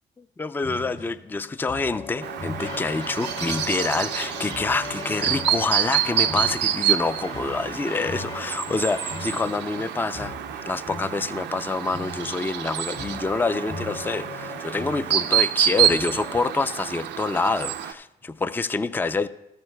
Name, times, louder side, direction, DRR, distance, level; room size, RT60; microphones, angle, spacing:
voice 1, 0.4-10.3 10.7-19.3, left 3 dB, 10° left, 0.3 m, -27 dB
sound 1, 0.6-16.5, left 3 dB, 55° left, 2.4 m, -39 dB
Chirp tweet, 2.2-17.9, right 11 dB, 80° right, 0.5 m, -28 dB
sound 2, 2.4-9.4, left 2 dB, 35° left, 1.6 m, -39 dB
14.0 x 13.5 x 2.2 m
cardioid pair, 75°, 18 cm